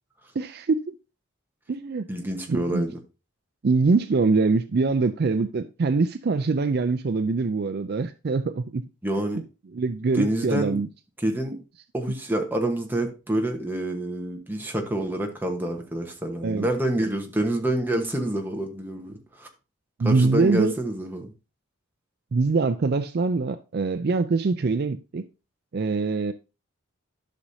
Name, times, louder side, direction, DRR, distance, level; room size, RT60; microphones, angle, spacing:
voice 1, 0.4-0.8 1.7-2.1 2.5-2.8 3.6-8.8 9.7-10.9 16.4-16.7 20.0-20.7 22.3-25.2 25.7-26.3, right 4 dB, 45° right, 0.4 m, -23 dB
voice 2, 2.1-2.9 9.0-9.4 10.1-10.8 11.2-11.6 11.9-19.5 20.0-21.3, right 1 dB, 10° right, 1.1 m, -27 dB
11.5 x 6.2 x 2.7 m
head